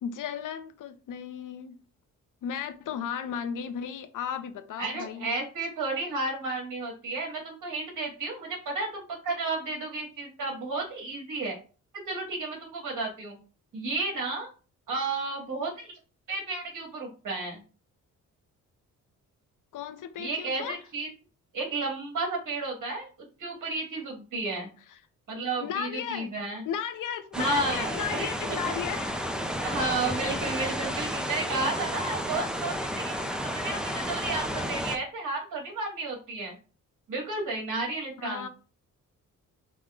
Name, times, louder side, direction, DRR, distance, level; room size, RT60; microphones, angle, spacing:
voice 1, 0.0-1.8 2.4-5.3 19.7-20.8 24.9-25.0 25.6-26.3 26.6-29.4 38.2-38.5, left 8 dB, 70° left, 0.7 m, -35 dB
voice 2, 4.8-11.6 12.1-13.4 13.7-14.5 14.9-15.9 16.3-17.6 20.2-21.1 21.5-24.7 25.3-26.6 27.4-28.6 29.6-36.6 37.1-38.5, right 3 dB, 65° right, 2.2 m, -32 dB
sound 1, 27.3-35.0, equal, ahead, 0.5 m, -32 dB
5.2 x 2.2 x 3.7 m
cardioid pair, 95°, 33 cm